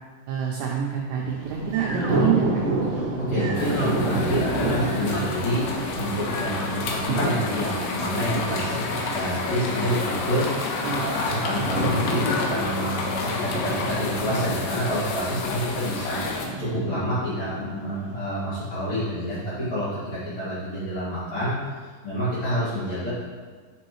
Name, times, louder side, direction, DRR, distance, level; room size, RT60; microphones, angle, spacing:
voice 1, 0.3-2.6 10.8-11.0, right 7 dB, 85° right, -2 dB, 2.4 m, -27 dB
Thunder, 1.2-18.2, right 2 dB, 45° right, 2.4 m, -30 dB
sound 1, 1.4-7.0, right 2 dB, 65° right, 2.2 m, -39 dB
voice 2, 2.9-23.1, equal, 50° left, -14 dB, 2.4 m, -28 dB
Churchbells and market, 3.5-16.5, left 4 dB, 80° left, 3.0 m, -30 dB
9.9 x 5.4 x 3.1 m, 1.5 s
omnidirectional pair, 5.7 m